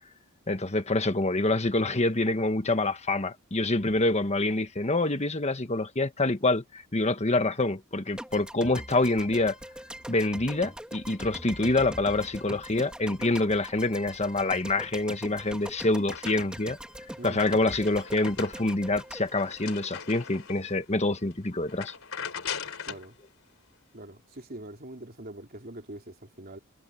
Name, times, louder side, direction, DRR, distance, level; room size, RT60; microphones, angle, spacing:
voice 1, 0.5-9.6 10.1-16.8 17.2-21.9, left 2 dB, 30° left, 1.5 m, -26 dB
sound 1, 8.2-20.4, equal, 5° right, 3.3 m, -42 dB
sound 2, 15.2-16.7 17.1-20.7 21.2-21.3 21.7-23.1, left 7 dB, 75° left, 4.0 m, -40 dB
voice 2, 17.2-17.6 22.8-23.2 23.9-26.6, right 1 dB, 45° right, 3.7 m, -43 dB
head